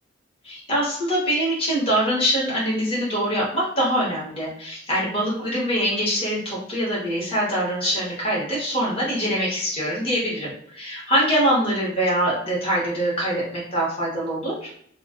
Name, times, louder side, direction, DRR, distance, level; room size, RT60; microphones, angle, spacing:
voice 1, 0.4-14.7, equal, 30° left, -5 dB, 1.1 m, -24 dB
2.4 x 2.4 x 3.5 m, 0.65 s
head